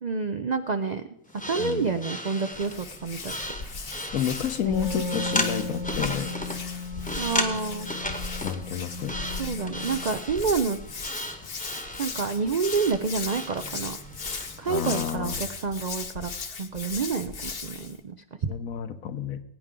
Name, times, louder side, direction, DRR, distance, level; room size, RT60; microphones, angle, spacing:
voice 1, 0.0-1.1 1.5-3.3 4.7-4.8 7.2-7.9 9.4-10.8 12.0-14.0 14.6-16.3 16.6-18.2 18.4-18.5, right 5 dB, 75° right, 9 dB, 0.3 m, -28 dB
sound 1, 1.3-15.2, left 1 dB, 5° left, 0.9 m, -35 dB
Hands, 2.5-18.0, left 4 dB, 45° left, 1.1 m, -38 dB
voice 2, 4.1-6.3 8.4-9.1 14.7-15.4 18.4-19.4, left 9 dB, 75° left, 10 dB, 1.3 m, -30 dB
Wind instrument woodwind instrument, 4.5-10.2, left 4 dB, 35° right, 1.2 m, -36 dB
21.0 x 9.1 x 3.7 m, 0.81 s
omnidirectional pair, 1.5 m